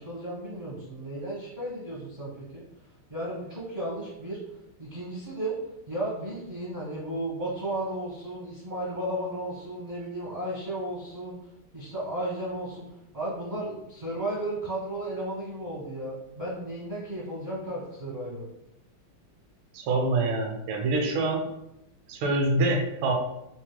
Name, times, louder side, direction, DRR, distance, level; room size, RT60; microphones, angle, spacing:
voice 1, 0.0-2.6 3.1-4.4 4.8-5.6 5.9-11.4 11.7-12.9 13.1-18.5, right 1 dB, 50° right, -6 dB, 0.5 m, -34 dB
voice 2, 19.7-21.4 22.1-23.1, right 2 dB, 80° right, 2 dB, 1.4 m, -25 dB
5.8 x 2.0 x 2.2 m, 0.85 s
omnidirectional pair, 2.2 m